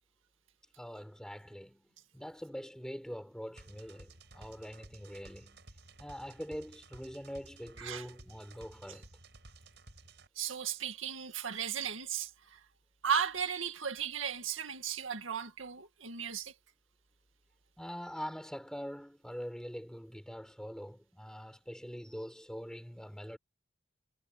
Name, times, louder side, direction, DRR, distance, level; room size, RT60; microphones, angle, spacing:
voice 1, 0.8-5.6 6.0-9.1 17.8-23.4, equal, 5° left, 6.0 m, -44 dB
sound 1, 3.6-10.3, right 2 dB, 60° right, 6.6 m, -55 dB
voice 2, 10.4-12.6 13.0-16.5, right 7 dB, 85° right, 2.0 m, -35 dB
head